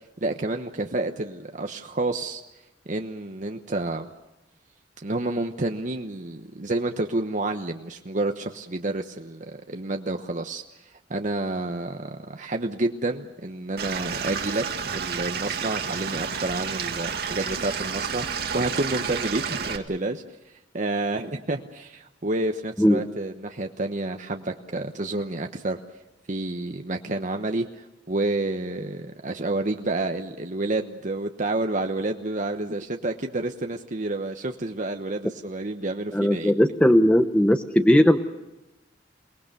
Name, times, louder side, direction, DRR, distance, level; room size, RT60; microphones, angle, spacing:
voice 1, 0.2-2.4 2.9-4.1 5.0-20.2 20.7-25.8 26.3-36.5, right 2 dB, 45° right, 5 dB, 1.1 m, -29 dB
Stream / Liquid, 13.8-19.8, right 6 dB, 60° right, 2.0 m, -30 dB
voice 2, 36.1-38.2, equal, 5° left, 8 dB, 0.9 m, -18 dB
28.5 x 19.5 x 6.9 m, 0.98 s
head